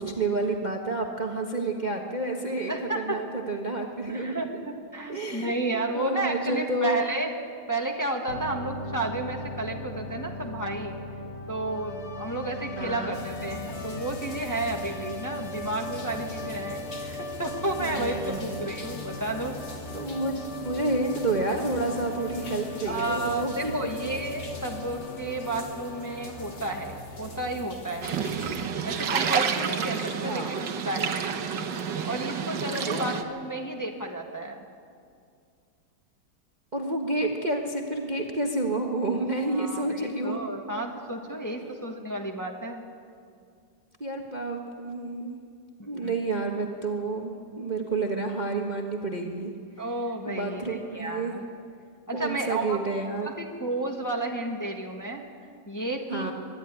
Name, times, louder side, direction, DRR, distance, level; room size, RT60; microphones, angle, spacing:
voice 1, 0.0-4.6 5.1-7.0 12.8-13.2 17.8-18.7 19.9-23.7 29.8-30.5 32.8-33.1 36.7-40.4 41.4-41.8 44.0-45.4 45.8-49.8 50.3-51.4 52.1-53.3 56.1-56.3, right 2 dB, 30° right, 1 dB, 1.2 m, -30 dB
voice 2, 2.7-3.2 4.1-7.3 7.7-10.9 11.5-19.6 22.9-28.2 28.8-31.2 32.0-34.6 39.5-42.8 45.8-46.2 49.8-51.4 52.1-52.8 53.2-55.2 55.7-56.3, right 2 dB, 10° left, 2 dB, 1.4 m, -32 dB
sound 1, 8.3-27.0, left 2 dB, 45° left, 1.3 m, -39 dB
sound 2, 13.1-28.6, left 1 dB, 80° left, 3.3 m, -42 dB
sound 3, 28.0-33.2, right 7 dB, 80° right, 1.8 m, -29 dB
24.5 x 11.5 x 9.7 m, 2.2 s
omnidirectional pair, 1.9 m